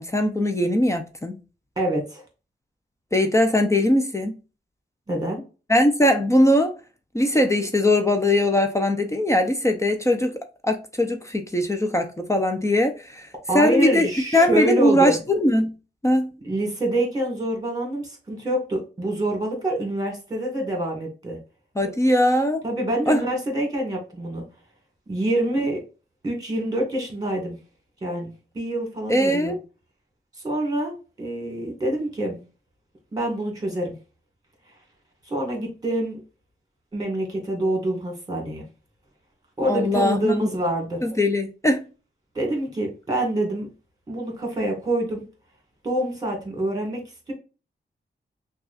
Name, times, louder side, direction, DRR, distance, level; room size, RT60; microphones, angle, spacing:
voice 1, 0.0-1.4 3.1-4.4 5.7-6.8 7.1-10.3 10.6-13.3 13.5-15.7 16.0-16.3 21.8-22.6 23.1-23.2 29.1-29.6 39.6-40.5 41.0-41.8, left 1 dB, 15° left, 0.6 m, -20 dB
voice 2, 1.8-2.2 5.1-5.4 13.5-15.2 16.4-21.4 22.6-24.4 25.1-25.8 26.2-27.6 28.0-29.6 30.4-32.4 33.1-33.9 35.3-36.2 36.9-38.6 39.6-41.0 42.4-43.7 44.1-45.2 45.8-47.0, right 1 dB, 20° right, 1.9 m, -26 dB
5.8 x 2.4 x 2.5 m
wide cardioid pair, 135°, 18 cm